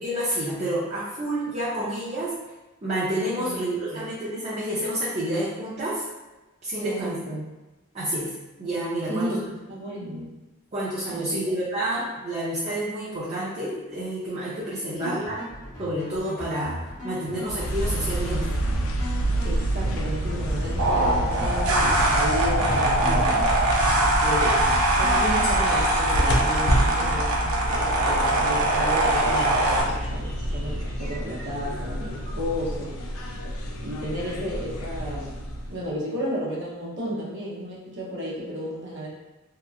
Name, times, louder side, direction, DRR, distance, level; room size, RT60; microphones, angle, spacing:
voice 1, 0.0-2.3 2.8-6.0 6.6-7.1 7.9-8.3 8.6-9.3 10.7-15.4 15.8-18.5, right 1 dB, 30° right, -10 dB, 0.6 m, -29 dB
voice 2, 6.8-7.4 9.1-10.3 11.1-11.5 14.9-15.2 19.4-23.5 24.2-32.9 33.8-35.3 35.7-39.1, equal, 60° right, -6 dB, 0.8 m, -33 dB
sound 1, 15.0-33.1, left 1 dB, 35° left, 0.9 m, -39 dB
sound 2, 17.4-35.9, equal, 75° left, 0.4 m, -28 dB
sound 3, 20.8-29.8, right 1 dB, 85° right, 0.5 m, -22 dB
2.9 x 2.3 x 2.3 m, 1.1 s
head